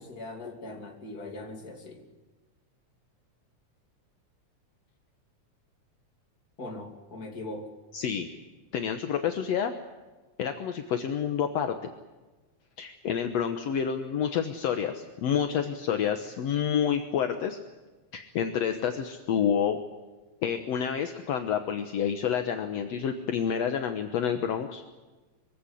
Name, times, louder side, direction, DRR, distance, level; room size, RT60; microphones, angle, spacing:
voice 1, 0.0-2.1 6.6-7.7, left 2 dB, 30° left, 3 dB, 3.1 m, -40 dB
voice 2, 7.9-8.3 8.7-9.7 10.4-11.7 12.8-17.6 18.1-19.8 20.4-24.8, left 8 dB, 65° left, 6 dB, 2.2 m, -28 dB
23.5 x 16.5 x 9.8 m, 1.2 s
omnidirectional pair, 3.4 m